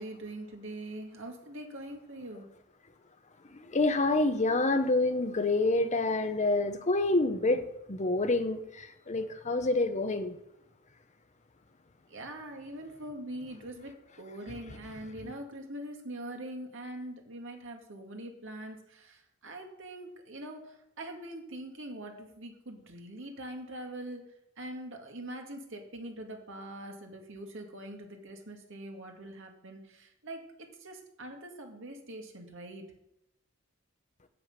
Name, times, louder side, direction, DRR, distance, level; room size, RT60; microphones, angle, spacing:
voice 1, 0.0-2.5 7.5-7.6 12.1-24.2 24.6-30.4 30.8-32.8, right 1 dB, 65° right, 3 dB, 2.1 m, -43 dB
voice 2, 3.5-10.4, left 2 dB, 35° left, 8 dB, 0.9 m, -27 dB
7.9 x 7.8 x 6.6 m, 0.83 s
head